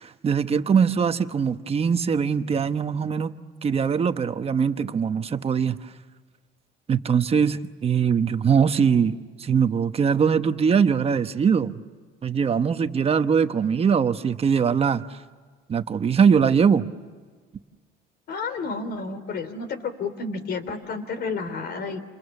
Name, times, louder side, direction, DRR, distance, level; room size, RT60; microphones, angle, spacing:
voice 1, 0.0-3.3 3.6-5.8 6.9-11.7 12.2-15.0 15.7-16.9, right 6 dB, 30° right, 9 dB, 1.1 m, -22 dB
voice 2, 18.3-22.0, left 4 dB, 50° left, 11 dB, 3.3 m, -31 dB
29.5 x 28.0 x 7.2 m, 1.5 s
cardioid pair, 140°, 21 cm